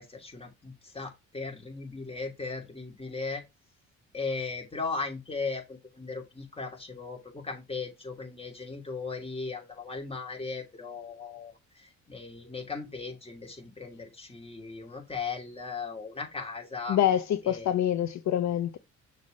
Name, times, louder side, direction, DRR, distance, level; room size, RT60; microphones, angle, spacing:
voice 1, 0.0-3.4 4.1-17.0 17.4-17.7, left 4 dB, 20° left, 2.8 m, -37 dB
voice 2, 16.9-18.8, left 11 dB, 65° left, 0.7 m, -26 dB
6.4 x 3.4 x 5.5 m
cardioid pair, 90°, 30 cm